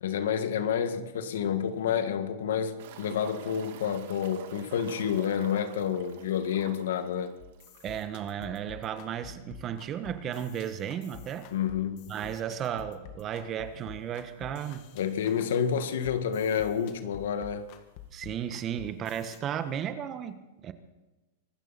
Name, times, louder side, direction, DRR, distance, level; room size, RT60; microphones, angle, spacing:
voice 1, 0.0-7.3 11.5-12.1 15.0-17.6, left 8 dB, 80° left, 1.8 m, -29 dB
sound 1, 2.8-8.2 8.4-8.5 8.9-9.0 11.8-11.9 13.6-13.7 14.4-14.5 14.8-14.9 15.8-15.9 16.0-16.6 17.6-17.7, right 9 dB, 65° right, 2.0 m, -48 dB
sound 2, 7.4-19.4, left 8 dB, 50° left, 1.7 m, -49 dB
voice 2, 7.8-11.5 12.1-14.8 18.1-20.7, right 9 dB, 30° right, 1.3 m, -34 dB
24.5 x 13.0 x 4.2 m
hypercardioid pair, 130°, 0 cm